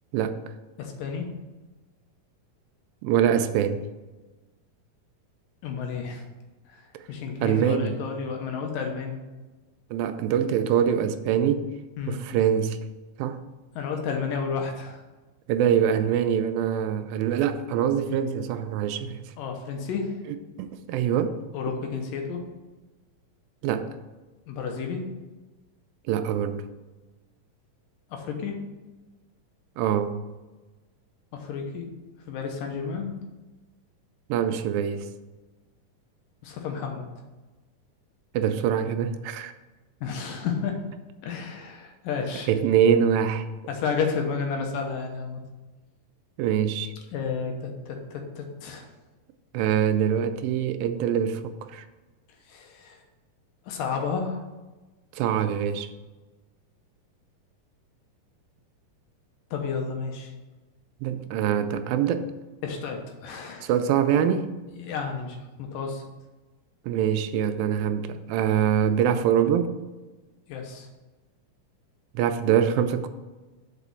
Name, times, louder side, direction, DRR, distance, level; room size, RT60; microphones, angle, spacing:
voice 1, 0.8-1.3 5.6-6.2 6.7-9.2 12.0-12.2 13.8-15.0 19.4-20.2 21.5-22.4 24.5-25.0 28.1-28.6 31.3-31.9 32.3-33.1 36.4-37.1 40.0-40.8 41.2-42.5 43.7-45.4 47.1-48.9 52.5-53.0 53.7-54.4 59.5-60.3 62.6-63.7 64.7-66.0 70.5-70.9, left 5 dB, 75° left, 2.6 m, -31 dB
voice 2, 3.0-3.8 7.4-8.0 9.9-11.7 12.1-12.8 13.2-13.4 15.5-19.2 20.6-21.4 23.6-23.9 26.1-26.7 29.8-30.2 34.3-35.1 38.3-39.5 42.5-43.5 46.4-46.9 49.5-51.8 55.1-55.9 61.0-62.3 63.6-64.6 66.9-69.7 72.2-73.1, right 9 dB, 85° right, 2.4 m, -24 dB
6.2 x 5.0 x 6.9 m
omnidirectional pair, 4.1 m